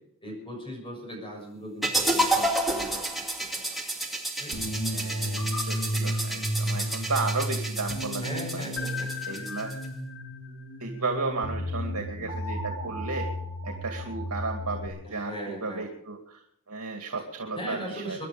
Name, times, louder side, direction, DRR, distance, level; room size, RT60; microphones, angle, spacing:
voice 1, 0.2-3.6 4.4-4.7 8.2-9.6 15.0-15.9 17.6-18.3, equal, 25° left, 0 dB, 6.8 m, -39 dB
sound 1, 1.8-9.9, right 1 dB, ahead, 2.3 m, -30 dB
sound 2, 4.5-14.9, equal, 80° left, 3.8 m, -33 dB
voice 2, 4.9-8.6 9.3-9.7 10.8-13.3 13.6-18.2, right 3 dB, 80° right, 3 dB, 2.3 m, -34 dB
24.5 x 11.0 x 5.1 m, 0.73 s
head